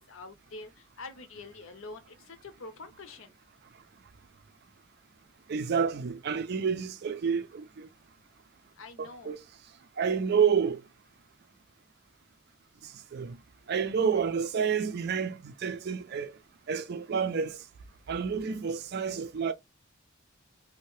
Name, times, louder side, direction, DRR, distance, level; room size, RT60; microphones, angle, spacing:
voice 1, 0.1-3.3 8.8-9.3 14.2-14.3, left 3 dB, 70° left, 0.7 m, -46 dB
voice 2, 5.5-7.9 9.0-9.4 10.0-10.8 13.1-13.4 13.7-16.3 16.7-17.6 18.1-19.5, right 6 dB, 50° right, 0.4 m, -29 dB
2.7 x 2.1 x 3.1 m
head